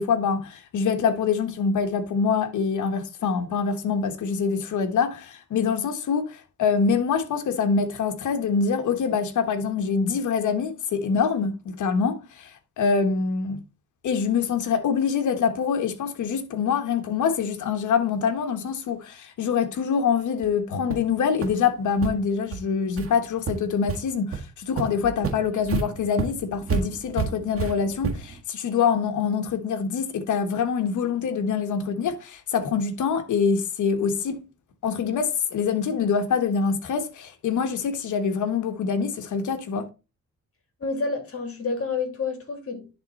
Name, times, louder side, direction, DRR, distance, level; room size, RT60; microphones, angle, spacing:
voice 1, 0.0-12.5 12.8-13.6 14.0-34.4 34.8-39.9, left 6 dB, 75° left, 1.3 m, -25 dB
sound 1, 20.4-20.5 20.9-21.1 21.4-21.5 22.0-22.1 22.5-22.6 23.0-23.1 23.5-24.0 24.3-24.4 24.8-28.4, right 6 dB, 45° right, 1.7 m, -30 dB
voice 2, 40.8-42.9, left 4 dB, 50° left, 2.6 m, -29 dB
10.5 x 3.7 x 4.1 m
cardioid pair, 100°, 30 cm